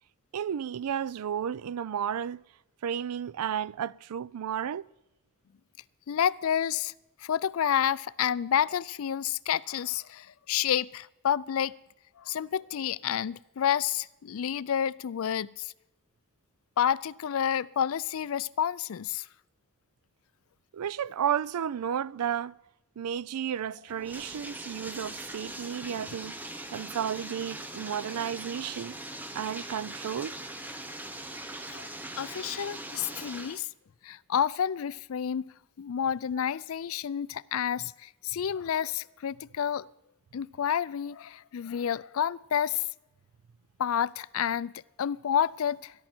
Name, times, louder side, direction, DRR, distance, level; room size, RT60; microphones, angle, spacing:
voice 1, 0.3-2.4 2.8-4.8 20.7-22.6 23.0-26.4 26.7-28.9 29.3-30.4, right 8 dB, 90° right, 0.4 m, -32 dB
voice 2, 6.1-6.9 7.2-11.7 12.2-15.7 16.8-19.3 31.7-31.9 32.2-33.7 34.0-39.9 40.3-42.8 43.8-44.7 45.0-45.9, left 9 dB, 70° left, 0.4 m, -29 dB
Bathtub (filling or washing), 23.9-33.6, right 1 dB, 10° right, 0.7 m, -41 dB
21.0 x 11.0 x 4.4 m
head